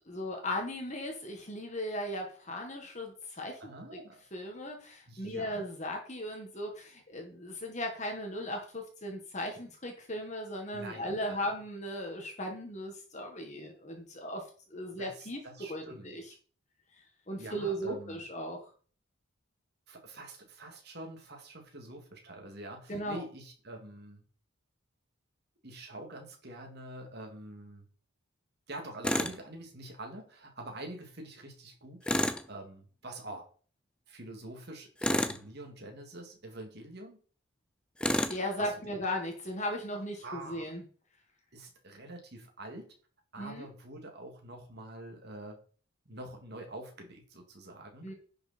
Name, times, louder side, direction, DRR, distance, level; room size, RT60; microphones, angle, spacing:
voice 1, 0.1-3.7 4.3-14.4 14.7-15.4 15.7-16.2 17.3-18.6 22.9-23.2 38.3-40.8 43.4-43.7 48.0-48.1, equal, 30° left, 3 dB, 1.8 m, -37 dB
voice 2, 3.6-4.2 5.1-5.7 10.7-11.4 15.0-16.4 17.4-18.2 19.9-24.2 25.6-27.9 28.7-32.0 32.5-33.4 34.1-37.2 38.6-39.1 40.2-40.7 41.5-42.9 43.3-45.6 46.1-48.1, right 1 dB, 50° right, 2 dB, 2.5 m, -46 dB
Tools, 29.0-29.4 32.0-32.5 35.0-35.5 38.0-38.4, left 1 dB, 5° left, 0.5 m, -29 dB
10.5 x 6.2 x 4.4 m, 0.41 s
head